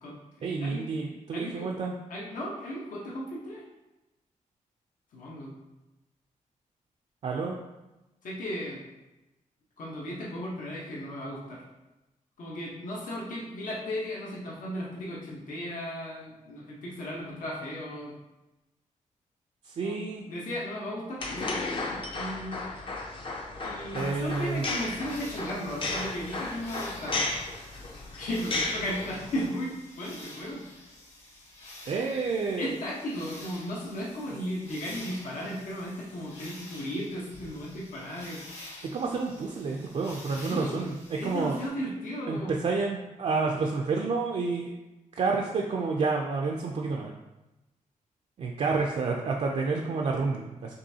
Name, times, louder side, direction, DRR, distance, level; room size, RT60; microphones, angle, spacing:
voice 1, 0.4-1.9 7.2-7.6 19.6-20.2 23.9-24.6 31.9-32.7 38.8-40.9 41.2-41.6 42.3-44.7 45.1-47.1 48.4-50.7, right 4 dB, 50° right, 0 dB, 0.4 m, -29 dB
voice 2, 1.3-1.7 2.1-3.6 5.1-5.5 8.2-8.8 9.8-11.6 12.4-18.1 19.8-20.0 20.3-22.7 23.6-27.2 28.2-30.8 32.6-38.4 40.4-40.8 41.2-42.6, equal, 75° left, -5 dB, 1.0 m, -35 dB
sound 1, 21.2-29.5, left 2 dB, 40° left, 0.5 m, -34 dB
sound 2, 24.0-41.7, left 1 dB, 55° left, 1.2 m, -49 dB
5.2 x 3.4 x 2.7 m, 1.0 s
wide cardioid pair, 160°, 14 cm